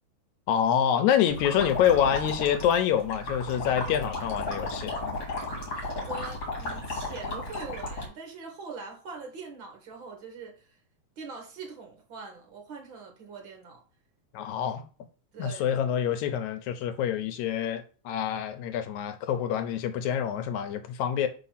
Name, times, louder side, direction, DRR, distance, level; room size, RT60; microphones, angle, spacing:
voice 1, 0.5-5.0 14.3-14.8 15.4-21.3, left 9 dB, 80° left, 2.1 m, -26 dB
sound 1, 1.3-8.1, left 2 dB, 45° left, 2.7 m, -34 dB
voice 2, 5.7-10.7 11.2-13.8 15.3-15.7, right 4 dB, 45° right, 2.0 m, -42 dB
4.8 x 4.1 x 5.7 m
omnidirectional pair, 3.4 m